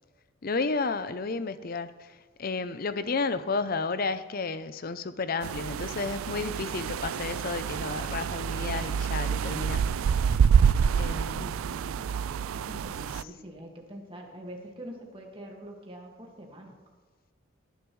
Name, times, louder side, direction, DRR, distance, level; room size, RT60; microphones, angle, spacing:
voice 1, 0.4-2.1 2.4-10.0 11.0-11.6, left 4 dB, 45° left, 0.6 m, -32 dB
sound 1, 5.4-13.2, right 7 dB, 85° right, 0.3 m, -27 dB
voice 2, 11.3-16.8, equal, 25° right, 1.9 m, -45 dB
18.5 x 10.0 x 3.2 m
head